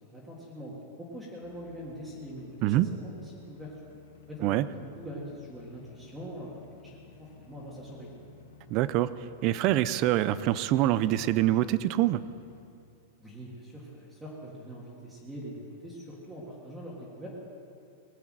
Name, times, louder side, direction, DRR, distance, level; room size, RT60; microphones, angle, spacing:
voice 1, 0.0-3.7 4.3-8.2 13.2-17.3, equal, 5° right, -5 dB, 1.8 m, -43 dB
sound 1, 1.4-12.6, left 5 dB, 75° left, 1.9 m, -55 dB
voice 2, 8.7-9.1 9.4-12.2, right 14 dB, 30° right, 16 dB, 0.4 m, -25 dB
19.0 x 8.4 x 7.5 m, 2.5 s
supercardioid pair, 175°, 0 cm